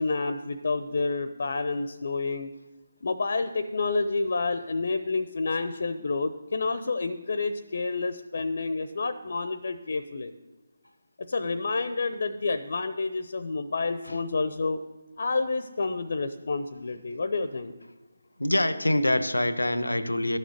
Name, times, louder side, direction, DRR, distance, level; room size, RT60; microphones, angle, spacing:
voice 1, 0.0-2.5 3.0-10.3 11.2-14.8 15.2-17.7, left 3 dB, 60° left, 10 dB, 0.8 m, -29 dB
voice 2, 18.4-20.4, left 1 dB, 90° left, 12 dB, 1.0 m, -25 dB
13.0 x 6.7 x 9.6 m, 1.1 s
figure-of-eight pair, 155°, 0 cm